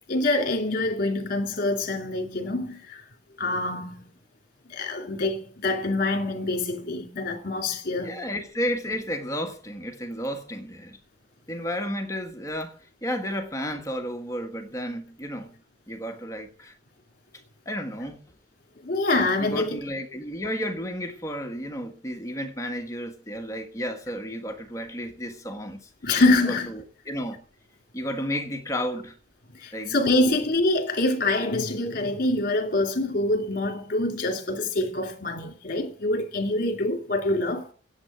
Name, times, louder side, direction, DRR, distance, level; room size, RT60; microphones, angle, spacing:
voice 1, 0.1-3.0 3.4-4.1 4.7-8.2 18.8-19.8 26.0-26.7 29.5-37.7, left 2 dB, 50° left, 2.6 m, -25 dB
voice 2, 8.0-11.0 11.5-15.5 15.9-16.7 17.6-18.2 19.4-25.9 26.5-27.4 27.9-29.2 29.7-30.4, equal, 20° left, 1.5 m, -32 dB
10.0 x 8.5 x 8.8 m
head